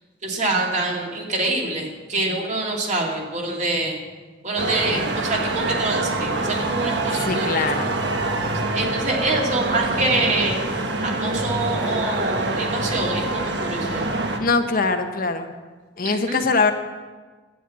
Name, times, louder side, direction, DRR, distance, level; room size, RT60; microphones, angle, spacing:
voice 1, 0.2-4.0 4.4-7.6 8.7-10.6 11.0-14.0 16.0-16.4, right 2 dB, 40° right, -1 dB, 2.5 m, -25 dB
sound 1, 4.6-14.4, right 2 dB, 65° right, 1.4 m, -25 dB
voice 2, 7.2-7.9 14.4-15.5 16.0-16.7, left 4 dB, 50° left, 6 dB, 0.9 m, -22 dB
11.5 x 8.9 x 8.4 m, 1.4 s
head